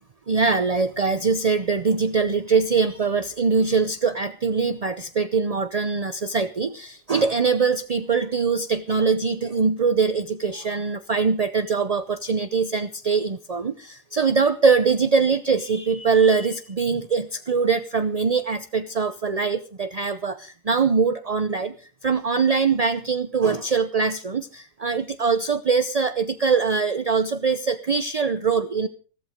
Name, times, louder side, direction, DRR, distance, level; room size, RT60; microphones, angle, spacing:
voice 1, 0.3-21.7 22.0-28.9, right 5 dB, 40° right, 10 dB, 0.5 m, -22 dB
15.5 x 14.5 x 5.1 m, 0.38 s
omnidirectional pair, 1.6 m